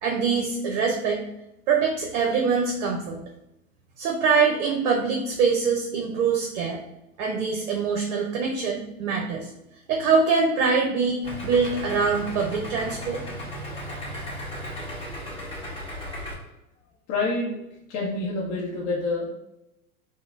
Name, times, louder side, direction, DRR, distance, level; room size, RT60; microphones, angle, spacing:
voice 1, 0.0-1.2 1.7-3.2 4.0-6.8 7.2-9.5 9.9-13.2, right 5 dB, 60° right, 1 dB, 0.6 m, -24 dB
Idling, 11.2-16.3, equal, 15° left, 1.1 m, -35 dB
voice 2, 17.1-17.6 17.9-19.3, left 3 dB, 35° left, -4 dB, 0.6 m, -27 dB
3.6 x 2.1 x 2.4 m, 0.88 s
hypercardioid pair, 95°, 43 cm